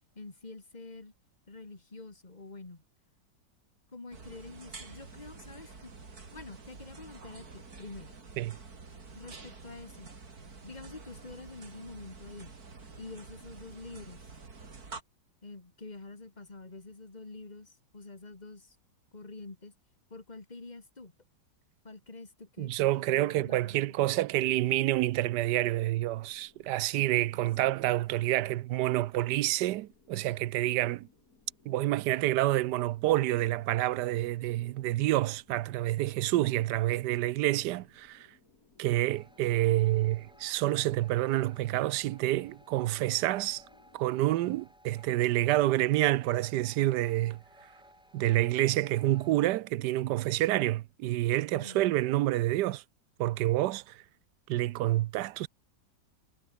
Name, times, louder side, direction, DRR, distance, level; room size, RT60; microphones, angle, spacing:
voice 1, 0.2-1.1 1.5-2.8 3.9-8.2 9.1-10.2 10.6-12.6 13.0-14.2 15.4-18.8 19.1-19.7 20.1-21.1 21.8-24.0 27.3-27.7 51.6-51.8, left 3 dB, 25° left, 2.4 m, -47 dB
sound 1, 4.1-15.0, right 4 dB, 55° right, 3.5 m, -48 dB
voice 2, 22.6-31.1 31.7-38.3 38.8-43.6 43.9-47.4 48.1-52.8 53.2-54.0 54.5-55.5, right 15 dB, 75° right, 1.1 m, -28 dB
sound 2, 25.6-44.4, left 4 dB, 50° left, 3.4 m, -65 dB
sound 3, 38.9-49.4, equal, ahead, 4.1 m, -58 dB
omnidirectional pair, 1.9 m